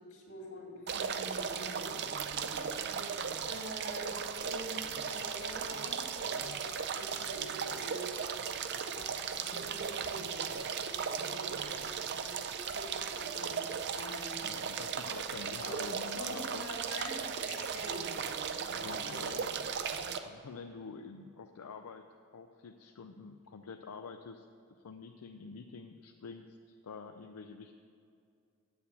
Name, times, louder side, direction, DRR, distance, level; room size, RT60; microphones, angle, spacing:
voice 1, 0.0-2.0 2.3-8.4 8.9-9.2 9.4-10.6 10.9-14.5 15.6-15.8 16.1-18.0 18.7-19.6, equal, 65° left, -2 dB, 2.4 m, -46 dB
sound 1, 0.9-20.2, right 6 dB, 50° right, 0.5 m, -37 dB
voice 2, 14.4-16.6 18.7-19.5 20.2-22.0 22.3-24.5 24.8-27.8, left 5 dB, 90° left, 5 dB, 0.5 m, -47 dB
8.3 x 7.2 x 7.3 m, 2.4 s
head